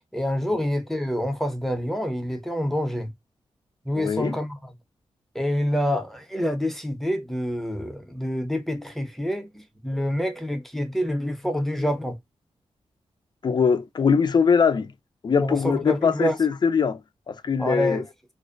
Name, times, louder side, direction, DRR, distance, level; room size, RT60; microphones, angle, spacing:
voice 1, 0.1-3.1 3.8-4.7 5.3-12.2 15.4-16.4 17.6-18.1, equal, 5° left, 0.6 m, -27 dB
voice 2, 3.9-4.4 13.4-14.9 15.2-17.0 17.3-18.0, left 6 dB, 45° left, 0.4 m, -22 dB
2.5 x 2.1 x 2.4 m
cardioid pair, 85°, 11 cm